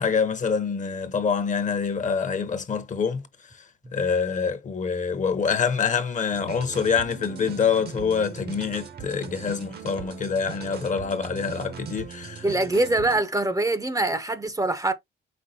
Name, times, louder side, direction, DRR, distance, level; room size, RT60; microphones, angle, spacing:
voice 1, 0.0-3.2 3.9-12.5, left 6 dB, 40° left, 0.8 m, -26 dB
sound 1, 6.3-13.2, right 7 dB, 55° right, 0.8 m, -39 dB
voice 2, 12.4-14.9, right 2 dB, 15° right, 0.6 m, -24 dB
5.2 x 3.7 x 2.7 m
cardioid pair, 90°, 20 cm